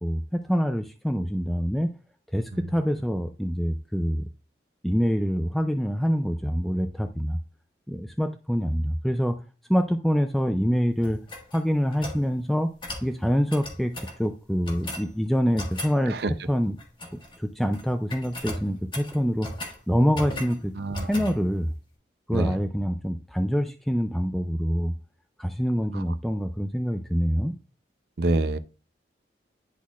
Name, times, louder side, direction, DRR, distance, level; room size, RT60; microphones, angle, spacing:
voice 1, 0.0-1.9 2.3-4.2 4.8-7.4 7.9-9.4 9.7-11.2 11.5-12.7 13.0-13.9 14.2-16.2 16.5-16.8 17.1-19.5 19.9-20.7 21.1-21.7 22.3-24.9 25.4-27.5, equal, ahead, 0.3 m, -25 dB
sound 1, 11.0-12.2 12.8-13.1 13.5-14.2 14.6-15.1 15.6-16.0 16.8-17.4 17.6-17.8 18.1-19.8 20.1-20.6 20.9-21.4, left 1 dB, 25° left, 1.3 m, -36 dB
voice 2, 20.8-21.1 22.3-22.6 25.9-26.0 28.2-28.6, right 2 dB, 60° right, 0.5 m, -26 dB
10.5 x 4.1 x 2.3 m
head